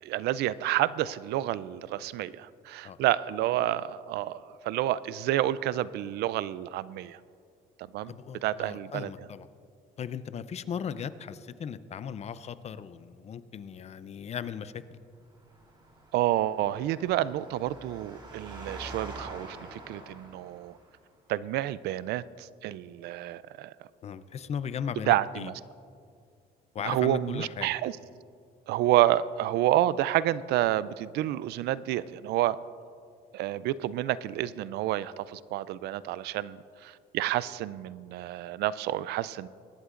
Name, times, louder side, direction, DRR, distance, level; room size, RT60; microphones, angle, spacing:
voice 1, 0.0-7.2 7.9-8.2 8.4-9.3 16.1-20.8 21.3-23.9 25.1-25.5 26.8-28.0 28.7-32.6 33.3-39.5, right 14 dB, 75° right, 18 dB, 0.4 m, -29 dB
voice 2, 8.1-9.5 10.0-15.0 24.0-25.5 26.7-27.7, left 7 dB, 40° left, 14 dB, 0.5 m, -37 dB
Engine, 15.3-20.9, right 2 dB, 30° right, 3.2 m, -46 dB
23.0 x 11.0 x 2.5 m, 2.3 s
cardioid pair, 110°, 17 cm